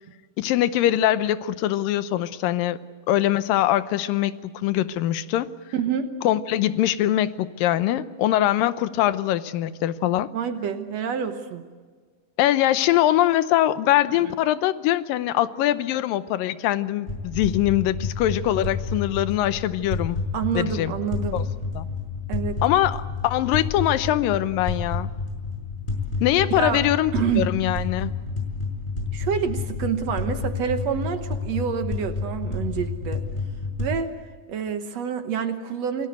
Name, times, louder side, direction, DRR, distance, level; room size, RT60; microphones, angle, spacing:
voice 1, 0.4-2.8 3.1-5.5 6.2-10.3 12.4-20.2 20.6-20.9 21.3-21.4 21.8-21.9 22.6-25.1 26.2-28.1, left 13 dB, 85° left, 14 dB, 2.6 m, -22 dB
voice 2, 5.7-6.1 10.3-11.6 20.3-21.4 22.3-22.6 26.6-26.8 27.1-27.5 29.1-33.2 33.8-34.1 34.5-36.1, right 7 dB, 60° right, 8 dB, 2.1 m, -27 dB
sound 1, 17.1-33.9, left 3 dB, 15° left, 5.4 m, -30 dB
28.0 x 19.0 x 8.0 m, 1.5 s
omnidirectional pair, 3.9 m